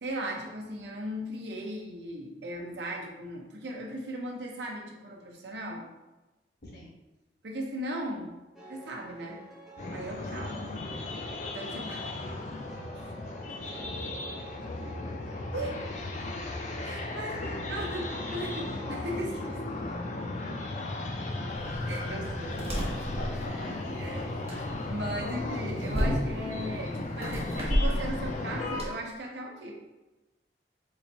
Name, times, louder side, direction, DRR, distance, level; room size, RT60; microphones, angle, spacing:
voice 1, 0.0-5.9 7.4-8.3 8.7-9.4 9.9-10.5 11.5-12.3 12.9-13.1 15.5-15.8 16.8-17.4 17.7-19.4 21.9-22.9 24.0-24.2 24.6-29.8, right 1 dB, 80° right, -1 dB, 0.7 m, -37 dB
sound 1, 8.6-25.2, right 1 dB, ahead, 0.6 m, -49 dB
sound 2, 9.8-28.8, left 2 dB, 40° left, 0.4 m, -36 dB
voice 2, 17.4-17.8 20.4-20.6 22.8-24.8, left 1 dB, 65° left, -3 dB, 1.1 m, -45 dB
sound 3, 21.5-28.9, equal, 35° right, 0.8 m, -33 dB
3.1 x 2.6 x 4.1 m, 1.1 s
head